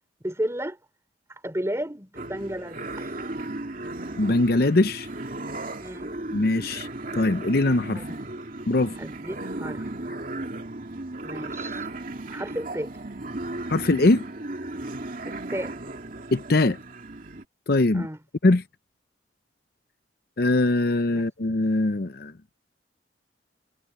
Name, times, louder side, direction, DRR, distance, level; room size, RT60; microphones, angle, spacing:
voice 1, 0.2-0.8 1.3-3.1 5.8-6.1 7.9-8.0 9.0-9.9 11.2-11.9 12.3-12.9 15.3-15.7 17.9-18.2 21.1-21.2, right 1 dB, 15° right, 3.4 m, -33 dB
sound 1, 2.1-17.4, right 2 dB, 45° right, 2.5 m, -35 dB
voice 2, 4.2-5.1 6.3-6.9 7.1-8.0 8.7-8.9 13.7-14.3 16.3-16.8 17.7-18.1 18.4-18.6 20.4-22.3, left 2 dB, 55° left, 0.7 m, -21 dB
head